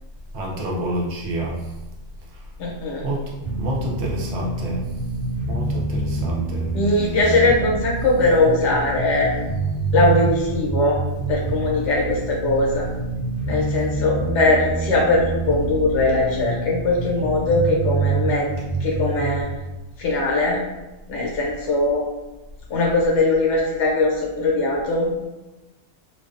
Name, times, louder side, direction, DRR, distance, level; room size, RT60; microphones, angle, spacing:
voice 1, 0.3-1.7 2.3-2.4 3.0-4.9 5.5-6.7, right 1 dB, 70° right, -2 dB, 0.9 m, -28 dB
voice 2, 2.6-3.1 6.7-9.3 9.9-11.0 11.3-12.9 13.5-18.5 18.8-19.5 20.0-20.6 21.1-22.0 22.7-25.1, left 2 dB, 70° left, -3 dB, 0.9 m, -20 dB
sound 1, 3.4-19.4, right 3 dB, 30° right, 0.7 m, -27 dB
2.5 x 2.3 x 2.4 m, 1.0 s
omnidirectional pair, 1.3 m